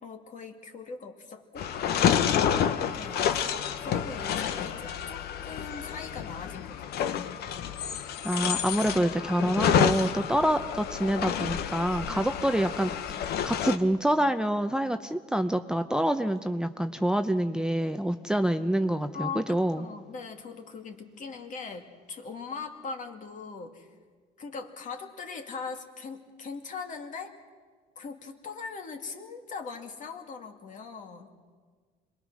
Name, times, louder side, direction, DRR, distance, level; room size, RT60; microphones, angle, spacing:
voice 1, 0.0-1.7 2.9-7.3 12.1-12.5 19.1-23.9 24.4-27.3 28.0-31.3, left 5 dB, 50° left, 4 dB, 2.4 m, -40 dB
sound 1, 1.6-13.8, left 8 dB, 70° left, 1.1 m, -29 dB
voice 2, 8.2-19.9, right 1 dB, 5° right, 8 dB, 0.6 m, -27 dB
26.5 x 21.0 x 6.3 m, 1.5 s
cardioid pair, 110°, 17 cm